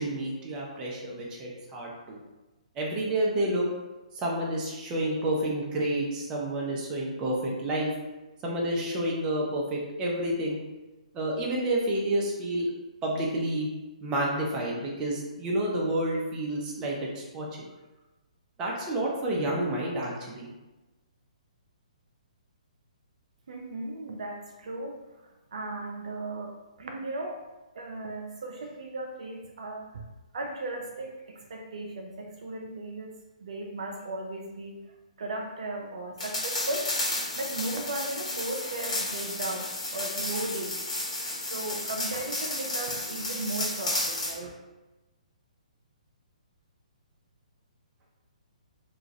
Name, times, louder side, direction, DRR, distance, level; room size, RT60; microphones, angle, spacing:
voice 1, 0.0-2.2 2.8-3.6 4.1-7.9 8.4-10.6 11.1-12.7 13.0-13.7 14.0-17.5 18.6-20.5, right 1 dB, 20° right, -3 dB, 0.6 m, -29 dB
voice 2, 23.5-25.0 25.5-27.4 27.8-30.0 30.3-34.8 35.2-36.9 37.4-40.8 41.5-44.6, right 2 dB, 65° right, 2 dB, 0.4 m, -36 dB
sound 1, 36.2-44.4, left 2 dB, 65° left, 1.2 m, -32 dB
2.9 x 2.3 x 2.6 m, 1.1 s
figure-of-eight pair, 130°, 4 cm